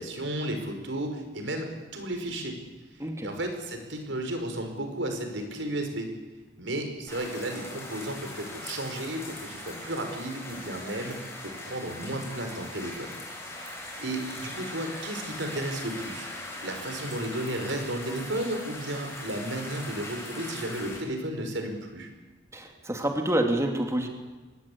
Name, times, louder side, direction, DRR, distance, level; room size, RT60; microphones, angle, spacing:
voice 1, 0.0-1.7 1.9-2.5 3.2-6.1 6.6-13.1 13.5-22.1, right 1 dB, 80° right, 5 dB, 5.2 m, -33 dB
voice 2, 3.0-3.3 22.5-24.1, right 1 dB, 15° right, 3 dB, 2.6 m, -27 dB
sound 1, 7.1-21.0, left 2 dB, 15° left, 7.9 m, -40 dB
24.5 x 20.5 x 8.7 m, 1.3 s
head